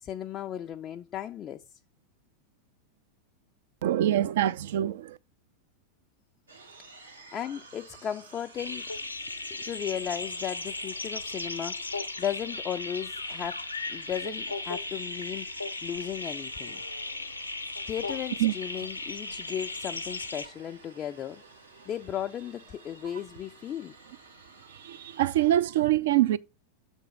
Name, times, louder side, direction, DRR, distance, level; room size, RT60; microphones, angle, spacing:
voice 1, 0.0-1.6 7.3-8.8 9.5-15.5 15.8-16.8 17.9-21.4 21.9-23.9, left 9 dB, 30° left, 0.3 m, -36 dB
voice 2, 3.8-5.2 18.4-18.5 24.7-26.4, right 13 dB, 55° right, 0.4 m, -25 dB
sound 1, 6.5-25.5, right 4 dB, 75° right, 1.2 m, -53 dB
sound 2, 8.6-20.5, left 3 dB, 80° left, 0.6 m, -36 dB
7.1 x 3.4 x 5.1 m
figure-of-eight pair, 90°, 0 cm